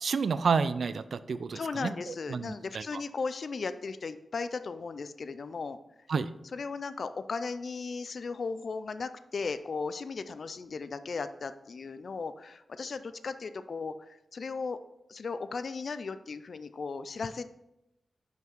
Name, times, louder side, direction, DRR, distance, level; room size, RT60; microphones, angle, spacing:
voice 1, 0.0-2.8 6.1-6.3, right 5 dB, 65° right, 14 dB, 0.3 m, -30 dB
voice 2, 1.5-5.8 6.5-14.8 15.1-17.5, left 4 dB, 60° left, 12 dB, 0.4 m, -36 dB
5.8 x 5.7 x 4.4 m, 0.88 s
wide cardioid pair, 90°, 0 cm